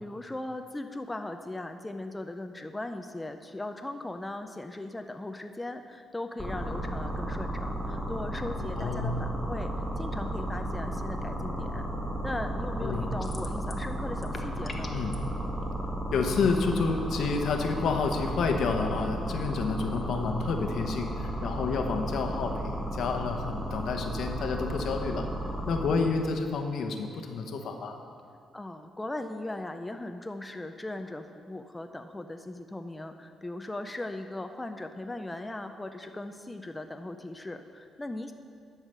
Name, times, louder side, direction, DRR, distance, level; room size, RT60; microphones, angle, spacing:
voice 1, 0.0-11.9 12.2-15.0 28.5-38.3, left 2 dB, 15° left, 6 dB, 0.5 m, -38 dB
sound 1, 6.4-26.0, right 1 dB, 10° right, 2.0 m, -33 dB
voice 2, 8.8-9.1 12.8-13.1 14.9-15.2 16.1-25.3 25.7-28.0, left 4 dB, 70° left, 4 dB, 0.9 m, -29 dB
sound 2, 13.2-13.9 14.1-15.2, left 3 dB, 30° left, 0.9 m, -43 dB
11.0 x 4.8 x 6.7 m, 2.4 s
cardioid pair, 90°, 0 cm